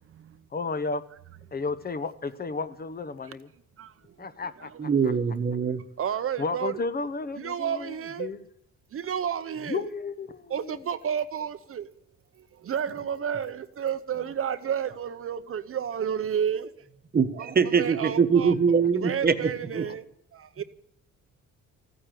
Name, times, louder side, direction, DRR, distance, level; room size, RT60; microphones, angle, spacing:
voice 1, 0.5-1.0 1.5-3.5 4.2-5.1 6.4-8.4 9.7-10.8 19.9-20.0, left 4 dB, 30° left, 0.9 m, -33 dB
voice 2, 4.8-5.8 17.1-19.8, right 6 dB, 30° right, 1.2 m, -23 dB
voice 3, 6.0-6.7 7.4-8.3 8.9-9.9 10.5-11.9 12.5-16.7 17.4-18.5 19.0-20.0 20.3-20.6, right 8 dB, 45° right, 0.8 m, -31 dB
15.5 x 9.7 x 9.1 m
cardioid pair, 140°, 30 cm